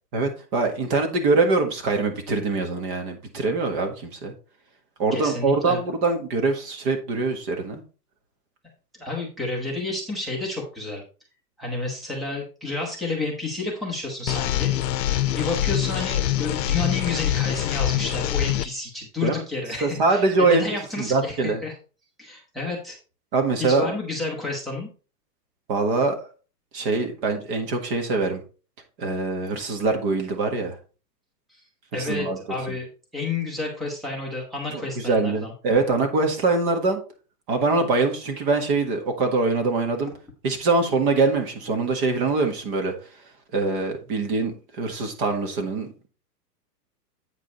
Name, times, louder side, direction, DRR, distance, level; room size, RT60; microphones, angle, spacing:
voice 1, 0.1-4.3 5.0-7.8 19.2-19.4 19.8-20.6 21.0-21.6 23.3-23.9 25.7-26.2 26.7-28.4 29.0-30.8 31.9-32.4 34.7-37.0 37.5-40.1 40.4-42.9 43.5-46.1, right 3 dB, 30° right, 5 dB, 1.6 m, -23 dB
voice 2, 5.1-5.8 9.0-11.0 11.6-14.7 15.3-21.7 22.2-23.0 23.6-24.9 31.9-32.9 33.1-35.5, left 3 dB, ahead, -1 dB, 0.8 m, -30 dB
sound 1, 14.3-18.7, left 12 dB, 85° left, 0.7 m, -24 dB
8.4 x 5.1 x 3.9 m, 0.35 s
hypercardioid pair, 165°, 49 cm